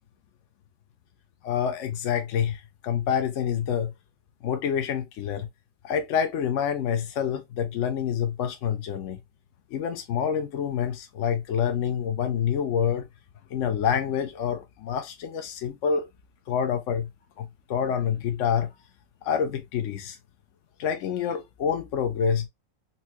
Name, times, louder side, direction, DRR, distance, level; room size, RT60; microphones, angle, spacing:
voice 1, 1.4-3.9 4.4-5.5 5.8-9.2 9.7-13.0 13.5-16.1 16.5-17.1 17.4-18.7 19.2-20.2 20.8-22.5, left 8 dB, 70° left, 1.0 m, -27 dB
4.3 x 2.2 x 2.7 m
omnidirectional pair, 1.4 m